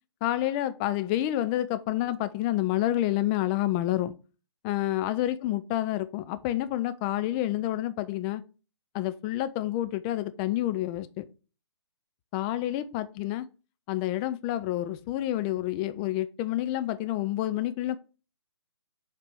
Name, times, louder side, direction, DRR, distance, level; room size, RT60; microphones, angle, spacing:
voice 1, 0.2-4.1 4.6-8.4 8.9-11.2 12.3-13.5 13.9-18.0, left 14 dB, 15° left, 12 dB, 0.3 m, -28 dB
7.1 x 3.3 x 4.6 m, 0.33 s
figure-of-eight pair, 135°, 15 cm